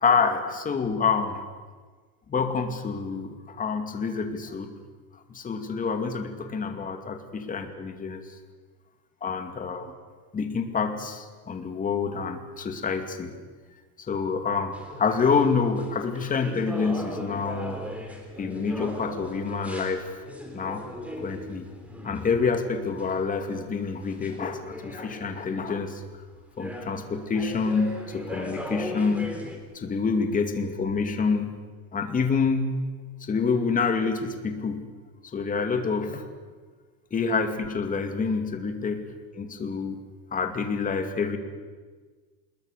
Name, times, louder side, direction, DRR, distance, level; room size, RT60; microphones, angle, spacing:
voice 1, 0.0-1.4 2.3-4.7 5.3-8.2 9.2-9.9 10.3-13.4 14.1-17.9 18.4-20.2 20.5-20.9 21.2-21.7 22.0-26.0 26.6-29.4 29.7-31.6 31.9-32.8 33.2-34.8 35.3-36.2 37.1-40.0 40.3-41.4, left 5 dB, 20° left, 6 dB, 2.5 m, -27 dB
sound 1, 14.7-23.2 24.1-25.9 26.3-29.6, equal, 5° right, 3.8 m, -38 dB
26.0 x 21.5 x 6.8 m, 1.5 s
supercardioid pair, 145°, 39 cm